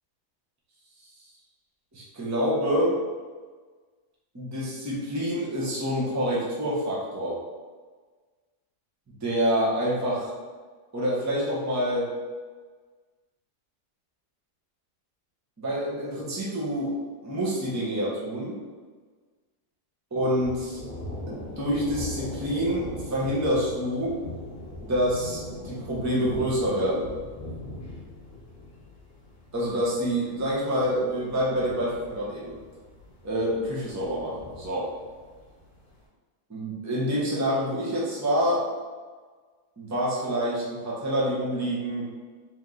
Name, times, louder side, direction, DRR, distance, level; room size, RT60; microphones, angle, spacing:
voice 1, 1.9-3.0 4.3-7.4 9.2-10.3 10.9-12.1 15.6-16.9 17.2-18.6 20.1-20.8 21.3-24.2 24.8-27.1 29.5-32.5 33.2-34.9 36.5-38.6 39.8-42.0, equal, 15° right, -6 dB, 0.7 m, -27 dB
Thunder, 20.4-35.9, left 1 dB, 35° left, 1.2 m, -40 dB
3.4 x 3.0 x 3.8 m, 1.5 s
omnidirectional pair, 1.7 m